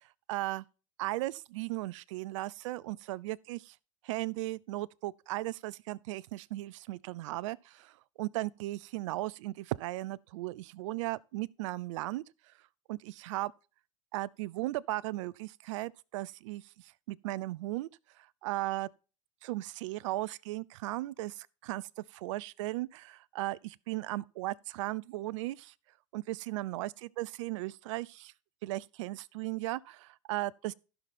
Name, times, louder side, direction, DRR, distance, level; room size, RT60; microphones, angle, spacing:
voice 1, 0.3-0.6 1.0-3.7 4.0-7.9 8.2-12.2 12.9-13.5 14.1-16.6 17.1-17.9 18.4-18.9 19.4-21.8 22.1-25.7 26.1-28.3 28.6-30.7, right 18 dB, 65° right, 0.5 m, -36 dB
15.0 x 5.7 x 4.2 m
hypercardioid pair, 100°, 17 cm